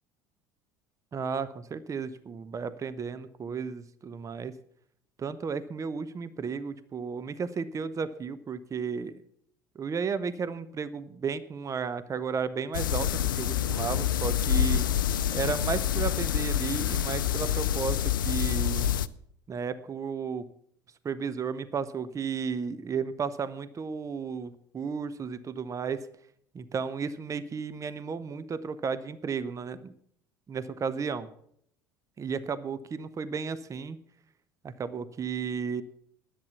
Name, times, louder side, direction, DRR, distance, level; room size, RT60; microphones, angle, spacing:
voice 1, 1.1-4.5 5.2-9.2 9.7-14.9 15.3-18.9 19.5-20.5 21.0-26.1 26.5-29.9 30.5-31.3 32.2-34.0 34.6-35.8, right 6 dB, 30° right, 14 dB, 0.8 m, -33 dB
sound 1, 12.7-19.1, left 10 dB, 80° left, 0.4 m, -27 dB
10.5 x 8.6 x 7.0 m, 0.68 s
hypercardioid pair, 65°, 11 cm